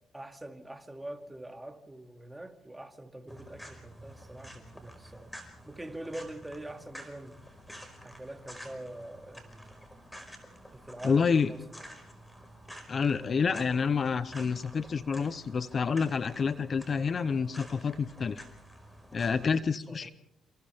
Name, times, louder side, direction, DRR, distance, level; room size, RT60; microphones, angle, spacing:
voice 1, 0.0-5.3 5.7-7.4 8.0-9.7 10.7-12.0 19.9-20.1, right 1 dB, 10° right, 2.4 m, -44 dB
sound 1, 3.3-19.5, equal, 5° left, 5.0 m, -50 dB
voice 2, 11.0-11.5 12.9-18.4 19.1-20.1, left 5 dB, 40° left, 0.8 m, -28 dB
28.5 x 28.0 x 3.5 m
cardioid pair, 95°, 0 cm